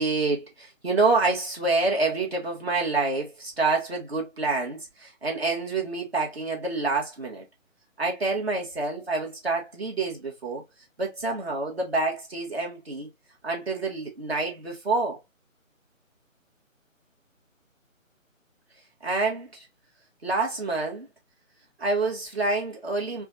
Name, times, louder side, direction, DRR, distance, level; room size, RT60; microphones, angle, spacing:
voice 1, 0.0-7.4 8.0-10.6 11.0-13.1 13.4-15.2 19.0-19.7 20.2-21.1 21.8-23.2, right 3 dB, 50° right, 1.3 m, -27 dB
4.8 x 2.4 x 2.4 m
figure-of-eight pair, 170°, 40 cm